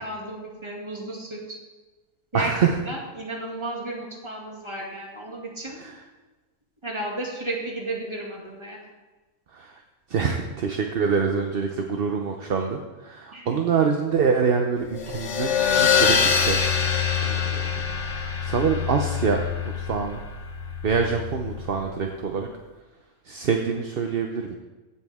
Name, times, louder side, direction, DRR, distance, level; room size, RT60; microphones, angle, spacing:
voice 1, 0.0-1.4 2.3-2.5 2.9-5.8 6.8-8.8 13.3-13.6, right 2 dB, 20° right, -3 dB, 2.2 m, -33 dB
voice 2, 2.3-2.8 5.7-6.0 9.5-9.7 10.1-16.6 17.2-18.0 18.4-19.5 19.7-20.2 20.8-22.5 23.3-24.6, right 6 dB, 50° right, 3 dB, 0.8 m, -25 dB
sound 1, 14.9-22.0, left 7 dB, 55° left, 1.3 m, -25 dB
16.0 x 7.0 x 3.6 m, 1.2 s
omnidirectional pair, 1.6 m